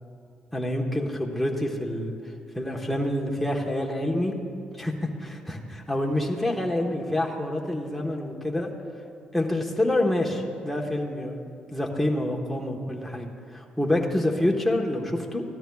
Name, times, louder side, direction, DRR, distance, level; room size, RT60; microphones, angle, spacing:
voice 1, 0.5-2.2 2.5-4.3 4.8-8.7 9.3-15.4, left 1 dB, 5° left, 0 dB, 1.3 m, -27 dB
15.0 x 13.0 x 2.4 m, 2.4 s
cardioid pair, 70°, 3 cm